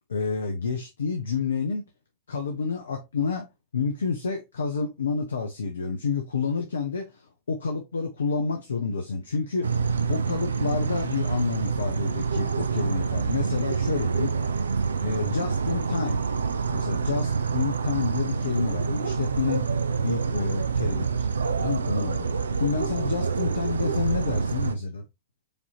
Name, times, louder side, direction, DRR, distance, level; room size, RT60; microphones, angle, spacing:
voice 1, 0.1-1.8 2.3-3.5 3.7-9.6 10.1-14.3 15.0-16.2 16.7-19.7 20.0-21.3 21.6-22.3 22.6-25.0, left 5 dB, 80° left, 0.7 m, -29 dB
sound 1, 9.6-24.7, right 5 dB, 85° right, 0.4 m, -27 dB
5.0 x 2.8 x 2.9 m
figure-of-eight pair, 95°, 0 cm